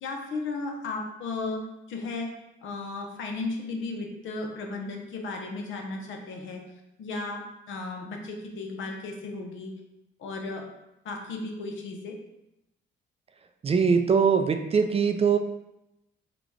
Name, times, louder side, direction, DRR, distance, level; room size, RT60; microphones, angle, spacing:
voice 1, 0.0-1.6 1.9-2.3 2.6-6.6 7.0-9.7 10.2-10.6 11.0-12.2, left 3 dB, 75° left, 2 dB, 0.8 m, -35 dB
voice 2, 13.6-15.4, right 6 dB, 30° right, 7 dB, 0.4 m, -22 dB
3.9 x 2.4 x 4.6 m, 0.89 s
cardioid pair, 90°, 20 cm